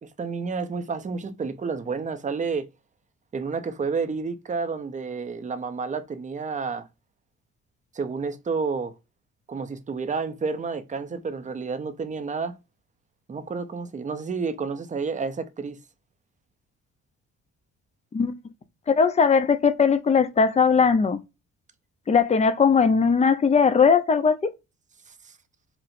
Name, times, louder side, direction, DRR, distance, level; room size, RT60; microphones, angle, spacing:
voice 1, 0.0-2.7 3.3-6.9 7.9-8.9 9.5-12.5 13.3-15.8, right 4 dB, 25° right, 0.5 m, -30 dB
voice 2, 18.9-21.2 22.1-24.4, left 5 dB, 25° left, 0.5 m, -19 dB
4.3 x 2.1 x 2.5 m
cardioid pair, 90°, 30 cm